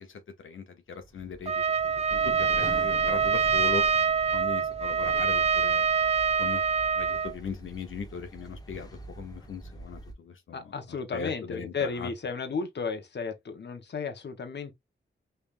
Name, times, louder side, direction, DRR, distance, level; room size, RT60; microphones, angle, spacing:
voice 1, 0.0-1.6 2.1-3.8 4.3-5.9 6.4-6.6 7.0-8.9 9.2-10.7 11.1-12.1, left 5 dB, 90° left, 1.0 m, -38 dB
sound 1, 1.0-10.1, left 1 dB, 20° left, 1.2 m, -44 dB
Trumpet, 1.4-7.3, right 6 dB, 30° right, 0.4 m, -25 dB
voice 2, 10.5-14.7, left 5 dB, 60° left, 1.2 m, -34 dB
5.4 x 3.5 x 2.5 m
wide cardioid pair, 110°, 20 cm